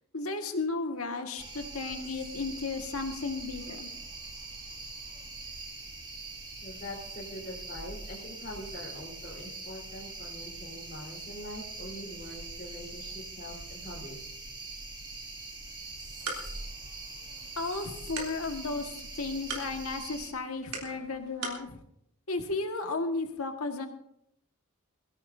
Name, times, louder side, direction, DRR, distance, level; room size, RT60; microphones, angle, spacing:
voice 1, 0.1-3.9 17.6-21.8 22.3-23.9, left 3 dB, 80° left, 5 dB, 1.7 m, -34 dB
sound 1, 1.4-20.3, right 3 dB, 20° right, 2.9 m, -43 dB
voice 2, 6.6-14.2, left 1 dB, 45° left, -3 dB, 4.0 m, -43 dB
sound 2, 15.8-21.7, right 4 dB, 90° right, 3.5 m, -43 dB
22.5 x 16.0 x 2.7 m, 0.74 s
head